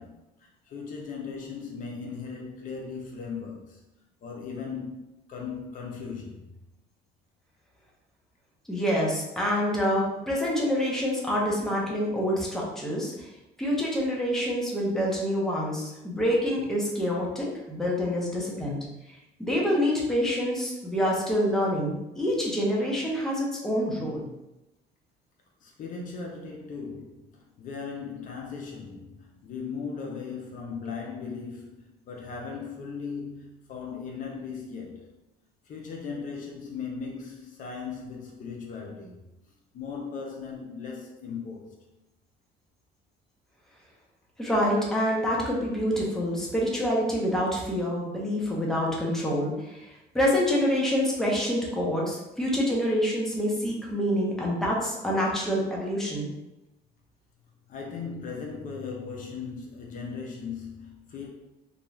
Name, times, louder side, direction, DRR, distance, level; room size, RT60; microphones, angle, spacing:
voice 1, 0.0-3.8 4.2-6.5 25.6-35.1 35.6-39.2 39.7-41.8 57.7-61.3, left 5 dB, 50° left, 0 dB, 0.5 m, -38 dB
voice 2, 8.7-13.3 13.6-18.8 19.4-24.3 44.4-49.9 50.1-56.3, equal, 5° left, -4 dB, 0.7 m, -27 dB
2.5 x 2.2 x 3.1 m, 0.93 s
cardioid pair, 110°, 17 cm